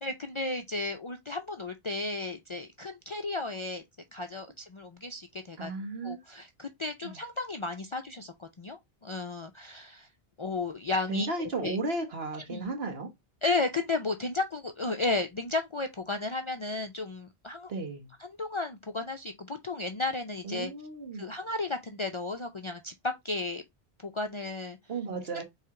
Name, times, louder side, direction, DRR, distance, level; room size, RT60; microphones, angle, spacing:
voice 1, 0.0-3.8 4.1-5.7 6.0-10.1 10.4-11.8 12.5-12.7 13.4-17.7 18.2-20.7 21.1-23.6 24.0-24.8, left 3 dB, 45° left, 0.4 m, -33 dB
voice 2, 5.6-6.2 7.0-7.2 11.1-13.1 17.7-18.1 20.4-21.4 24.9-25.4, right 2 dB, 75° right, 1.5 m, -34 dB
4.4 x 3.2 x 3.6 m
omnidirectional pair, 1.0 m